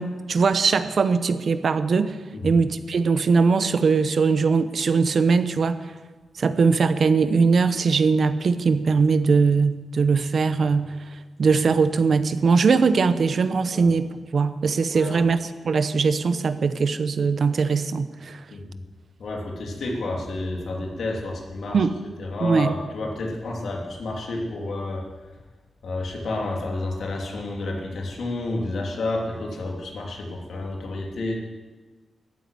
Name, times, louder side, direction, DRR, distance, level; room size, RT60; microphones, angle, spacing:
voice 1, 0.0-2.2 2.4-5.8 6.4-11.0 11.4-14.1 14.3-18.4 21.7-22.0 22.4-22.8, right 5 dB, 45° right, 12 dB, 0.8 m, -21 dB
voice 2, 14.9-15.2 18.5-18.8 19.2-21.9 22.2-25.0 25.8-31.4, left 2 dB, 60° left, 0 dB, 2.9 m, -30 dB
13.5 x 9.5 x 9.4 m, 1.3 s
wide cardioid pair, 175°, 0 cm